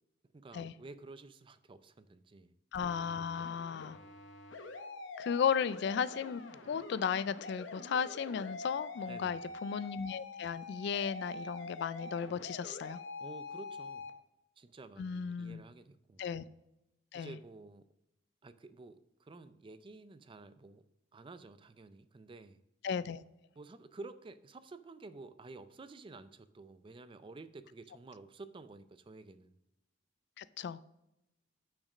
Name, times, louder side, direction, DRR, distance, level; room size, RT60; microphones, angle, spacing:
voice 1, 0.3-2.5 3.3-4.1 9.1-9.6 13.2-14.0 14.6-16.2 17.1-17.8 18.4-20.8 21.1-22.6 23.6-29.6, right 3 dB, 25° right, 12 dB, 0.4 m, -51 dB
sound 1, 2.7-14.1, left 3 dB, 85° left, 0.8 m, -46 dB
voice 2, 2.7-4.0 5.2-13.0 15.0-15.6 16.2-16.4 17.1-17.4 22.8-23.2 30.4-30.8, left 7 dB, 65° left, 17 dB, 0.3 m, -35 dB
6.6 x 5.9 x 5.0 m, 0.88 s
head